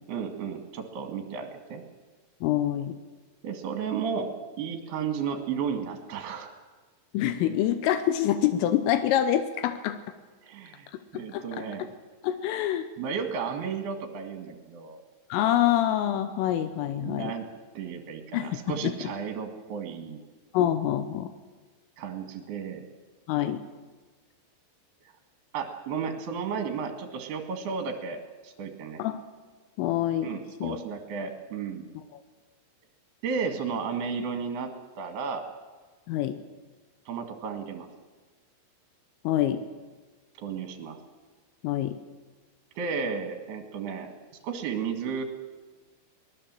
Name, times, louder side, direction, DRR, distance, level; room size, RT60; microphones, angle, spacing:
voice 1, 0.1-1.8 3.4-6.5 10.4-11.9 13.0-15.0 17.0-17.5 17.8-20.2 22.0-22.9 25.5-29.0 30.2-31.9 33.2-35.5 37.1-37.9 40.4-41.0 42.8-44.1 44.4-45.2, right 6 dB, 60° right, 5 dB, 3.5 m, -33 dB
voice 2, 2.4-3.0 7.1-10.0 11.1-11.6 12.2-12.9 15.3-17.3 18.3-18.6 18.8-18.9 20.5-21.3 23.3-23.6 29.0-29.2 29.8-30.3 30.6-30.8 36.1-36.4 39.2-39.6 41.6-42.0, left 11 dB, 85° left, 10 dB, 3.5 m, -26 dB
23.5 x 20.0 x 7.6 m, 1.3 s
omnidirectional pair, 5.8 m